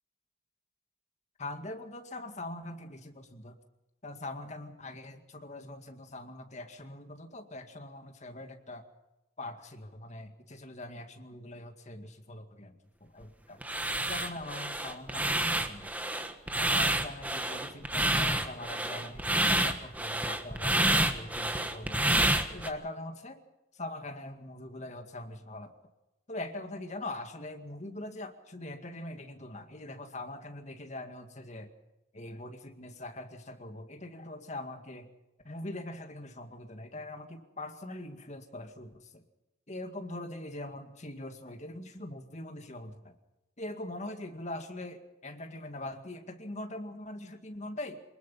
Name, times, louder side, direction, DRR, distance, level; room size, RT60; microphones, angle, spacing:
voice 1, 1.4-3.6 4.0-8.9 9.4-13.6 14.1-15.9 16.6-22.0 22.5-23.4 23.7-25.7 26.3-31.7 32.1-35.1 35.4-39.2 39.7-43.2 43.6-48.0, left 1 dB, 40° left, 6 dB, 2.1 m, -42 dB
sound 1, 13.6-22.7, right 1 dB, 10° right, 1.4 m, -28 dB
23.5 x 20.5 x 5.7 m, 0.98 s
head